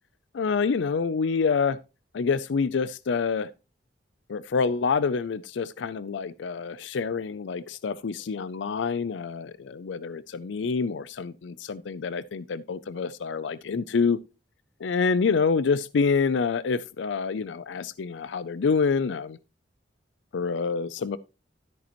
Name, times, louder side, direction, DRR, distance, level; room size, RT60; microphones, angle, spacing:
voice 1, 0.3-1.8 2.1-3.5 4.3-14.2 14.8-19.4 20.3-21.2, left 5 dB, 75° left, 0.4 m, -27 dB
13.0 x 8.4 x 3.0 m
head